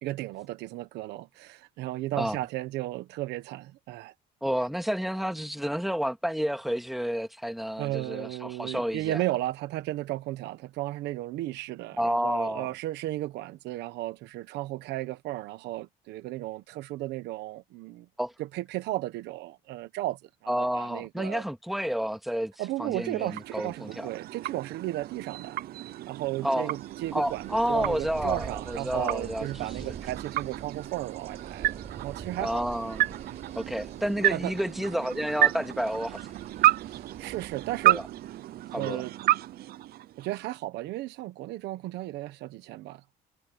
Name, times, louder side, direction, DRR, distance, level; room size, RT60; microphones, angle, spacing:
voice 1, 0.0-4.1 7.8-18.1 18.4-21.4 22.6-25.6 26.1-32.6 33.3-33.4 34.3-34.5 36.9-38.0 38.8-39.1 40.2-43.0, right 16 dB, 85° right, 1.3 m, -34 dB
voice 2, 4.4-9.2 12.0-12.7 18.2-18.3 20.5-22.5 22.8-24.1 26.4-26.7 27.1-29.9 32.4-33.2 33.6-36.2 37.9-38.1 38.7-39.0, equal, ahead, 2.4 m, -30 dB
sound 1, 22.8-40.6, right 14 dB, 65° right, 0.7 m, -31 dB
sound 2, 26.7-38.4, right 7 dB, 40° right, 5.5 m, -46 dB
cardioid pair, 110°, 17 cm